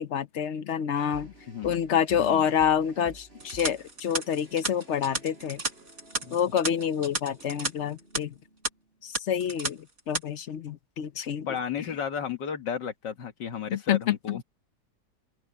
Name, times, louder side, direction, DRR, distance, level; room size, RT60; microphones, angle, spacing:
voice 1, 0.0-1.3 1.6-5.6 6.3-8.3 9.0-9.8 10.1-11.5 13.7-14.4, left 8 dB, 55° left, 0.8 m, -27 dB
sound 1, 1.0-9.1, right 1 dB, 35° right, 7.3 m, -52 dB
voice 2, 2.2-2.5 6.2-6.4 11.5-14.4, left 7 dB, 85° left, 2.2 m, -33 dB
sound 2, 3.4-7.7 8.0-8.2 8.6-8.7 9.1-9.7 10.0-10.2, right 3 dB, 50° right, 4.9 m, -33 dB
open air
omnidirectional pair, 1.9 m